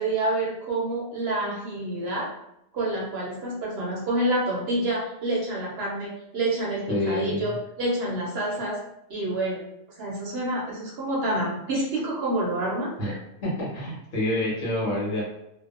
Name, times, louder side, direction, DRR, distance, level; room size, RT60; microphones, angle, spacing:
voice 1, 0.0-2.3 2.7-8.8 9.1-9.6 10.0-12.9, right 1 dB, 60° right, -4 dB, 0.7 m, -28 dB
voice 2, 6.9-7.5 13.0-13.2 13.4-15.2, left 1 dB, 75° left, -5 dB, 1.3 m, -27 dB
2.7 x 2.0 x 2.4 m, 0.83 s
omnidirectional pair, 1.4 m